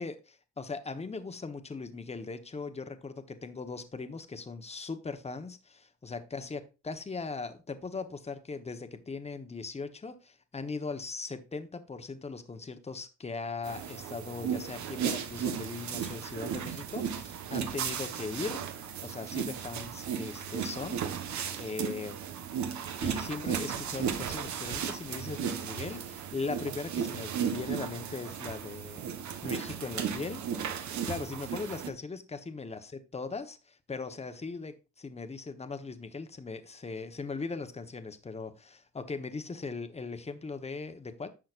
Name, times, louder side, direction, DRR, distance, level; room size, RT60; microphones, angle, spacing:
voice 1, 0.0-21.0 21.6-22.2 23.0-30.4 31.1-41.3, left 4 dB, 20° left, 1.1 m, -39 dB
sound 1, 13.6-31.9, right 8 dB, 70° right, 1.2 m, -35 dB
10.5 x 6.4 x 2.5 m
cardioid pair, 90°, 30 cm